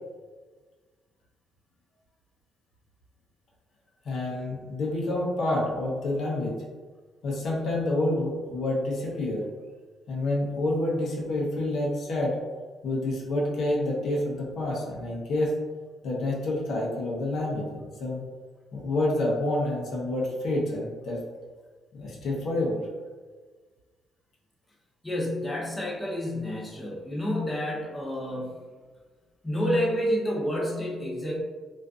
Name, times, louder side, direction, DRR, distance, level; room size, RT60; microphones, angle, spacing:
voice 1, 4.0-6.6 7.2-9.5 10.1-12.3 12.8-15.5 16.0-18.2 18.7-21.2 21.9-22.8, left 1 dB, 70° left, -3 dB, 0.6 m, -28 dB
voice 2, 25.0-28.5 29.4-31.4, equal, 15° left, -4 dB, 0.6 m, -29 dB
2.4 x 2.4 x 2.3 m, 1.4 s
cardioid pair, 90°, 0 cm